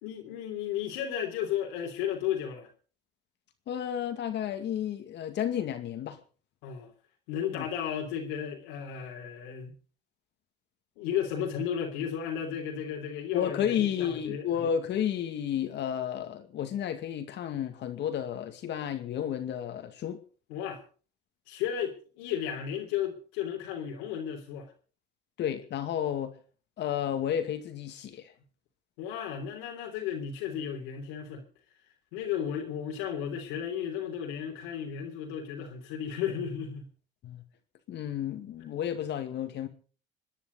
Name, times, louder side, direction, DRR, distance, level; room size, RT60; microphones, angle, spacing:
voice 1, 0.0-2.7 6.6-6.9 7.3-9.8 11.0-14.6 20.5-20.8 21.5-24.7 29.0-31.4 32.1-36.9 38.6-38.7, left 9 dB, 90° left, 3.3 m, -34 dB
voice 2, 3.7-6.2 7.5-7.7 13.3-20.2 25.4-26.3 26.8-28.3 37.2-37.4 37.9-39.7, left 9 dB, 65° left, 2.3 m, -32 dB
27.5 x 9.9 x 4.0 m
supercardioid pair, 75°, 20 cm